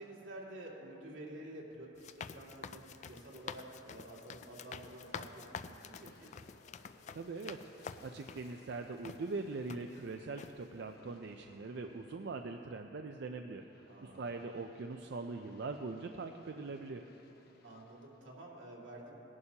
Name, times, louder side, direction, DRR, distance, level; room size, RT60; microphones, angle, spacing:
voice 1, 0.0-6.3 13.9-14.3 17.6-19.1, right 1 dB, 85° right, -4 dB, 2.4 m, -50 dB
sound 1, 2.0-8.5 9.0-9.2 9.7-10.1 10.4-10.6, left 6 dB, 40° left, 0.3 m, -48 dB
Aircraft, 3.0-13.0 13.5-18.4, left 3 dB, 55° left, 0.9 m, -64 dB
voice 2, 7.1-17.0, right 3 dB, 60° right, 5 dB, 0.4 m, -42 dB
19.0 x 11.0 x 2.8 m, 3.0 s
head